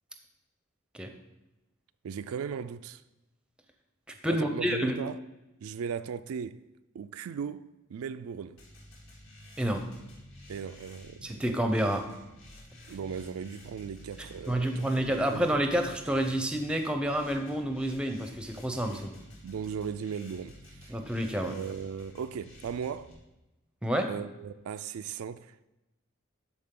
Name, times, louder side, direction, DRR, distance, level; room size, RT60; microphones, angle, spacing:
voice 1, 2.0-3.0 4.2-5.2 5.6-6.6 6.9-8.6 10.5-11.4 12.9-14.8 15.3-15.5 18.9-19.0 19.4-21.0 21.4-23.1 24.1-25.6, right 7 dB, 85° right, 0.3 m, -37 dB
voice 2, 4.2-5.0 9.6-9.8 11.2-12.0 14.5-19.1 20.9-21.5 23.8-24.1, equal, 5° right, 0.6 m, -29 dB
sound 1, 8.6-23.2, left 1 dB, 65° left, 2.2 m, -51 dB
12.0 x 4.3 x 3.8 m
head